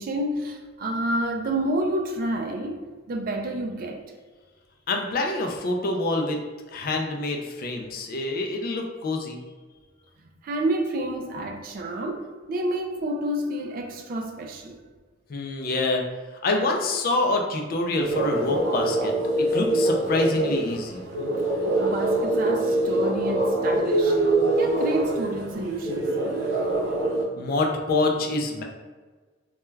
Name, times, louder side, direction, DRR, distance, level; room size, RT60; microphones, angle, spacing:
voice 1, 0.0-4.0 10.4-14.8 21.7-24.3 24.6-26.2, right 1 dB, 45° right, 0.3 m, -29 dB
voice 2, 4.9-6.4 6.7-9.4 15.3-16.0 16.4-19.1 19.5-21.0 27.4-28.6, left 2 dB, 50° left, 0.4 m, -26 dB
sound 1, 18.0-27.2, right 2 dB, 90° right, 0.7 m, -24 dB
2.2 x 2.2 x 3.1 m
head